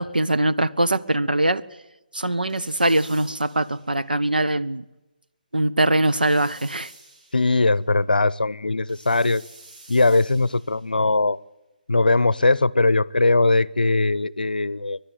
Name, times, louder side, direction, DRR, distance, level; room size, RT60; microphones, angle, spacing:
voice 1, 0.0-1.6 2.1-4.8 5.5-6.9, right 1 dB, 85° right, 0.9 m, -22 dB
sound 1, 2.5-4.1 6.1-7.7 8.9-10.9, right 2 dB, 60° right, 4.4 m, -49 dB
voice 2, 7.3-9.4 9.9-11.4 11.9-15.0, left 2 dB, 80° left, 0.6 m, -20 dB
29.5 x 12.0 x 9.1 m
figure-of-eight pair, 145°, 5 cm